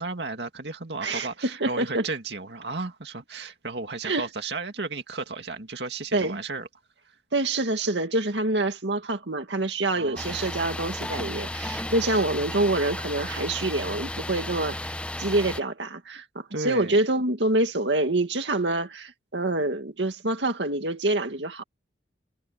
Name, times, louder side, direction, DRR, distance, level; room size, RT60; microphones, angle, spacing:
voice 1, 0.0-6.7 10.0-10.3 12.0-12.2 16.5-17.0, right 3 dB, 70° right, 2.2 m, -34 dB
voice 2, 1.6-2.1 4.0-4.3 6.1-6.4 7.3-14.9 15.2-21.6, right 2 dB, 90° right, 2.2 m, -26 dB
sound 1, 10.2-15.6, left 1 dB, 5° left, 0.7 m, -34 dB
head